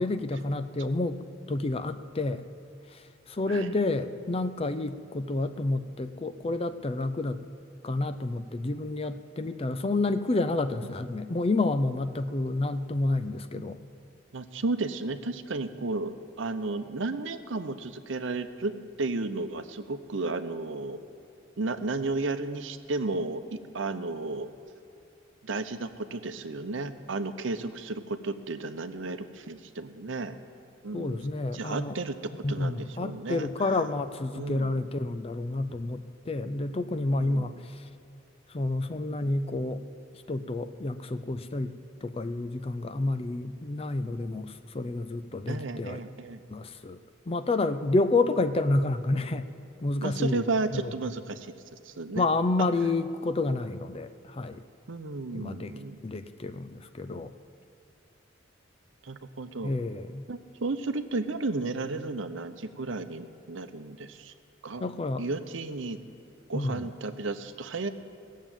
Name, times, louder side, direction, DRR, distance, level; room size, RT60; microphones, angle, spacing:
voice 1, 0.0-2.5 2.9-7.4 7.8-13.8 30.9-32.0 32.4-37.8 38.5-39.8 40.1-41.7 42.0-46.0 46.5-47.0 47.3-49.5 49.8-50.5 50.7-50.9 52.1-54.6 55.3-55.7 56.0-57.3 59.6-60.2 64.8-65.2 66.5-66.8, left 2 dB, 30° left, 10 dB, 0.5 m, -29 dB
voice 2, 14.3-18.7 19.0-21.0 21.6-24.5 25.4-30.3 30.8-31.2 31.5-33.7 34.3-34.8 37.2-37.6 45.5-46.4 50.0-52.3 54.9-56.0 59.0-59.7 60.3-64.3 64.6-64.8 65.2-66.0 66.5-67.9, right 3 dB, 70° right, 9 dB, 0.8 m, -33 dB
17.5 x 7.4 x 9.0 m, 2.7 s
head